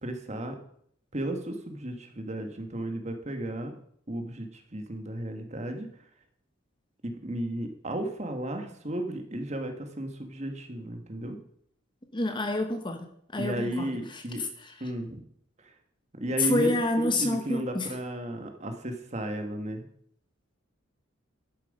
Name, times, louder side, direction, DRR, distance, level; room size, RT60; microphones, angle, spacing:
voice 1, 0.0-0.5 1.1-3.7 4.1-5.9 7.0-11.4 13.4-14.4 14.8-15.2 15.6-15.7 16.2-16.7 17.0-19.9, right 1 dB, 35° right, 5 dB, 1.5 m, -34 dB
voice 2, 12.1-13.0 13.3-13.9 16.4-17.9, left 2 dB, 25° left, 6 dB, 1.1 m, -27 dB
11.5 x 7.6 x 5.3 m, 0.67 s
head